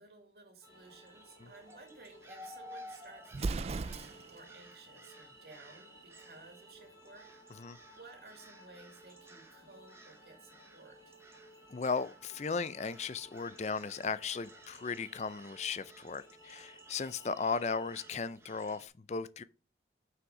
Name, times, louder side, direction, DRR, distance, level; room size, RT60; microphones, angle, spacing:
voice 1, 0.0-11.2, right 3 dB, 60° right, 2.3 m, -56 dB
sound 1, 0.6-18.1, equal, 20° left, 2.3 m, -59 dB
sound 2, 0.6-18.9, right 1 dB, 15° right, 0.9 m, -56 dB
Explosion, 3.3-4.5, right 3 dB, 35° right, 0.3 m, -36 dB
voice 2, 11.7-19.4, left 5 dB, 40° left, 0.4 m, -36 dB
6.2 x 5.9 x 4.8 m
head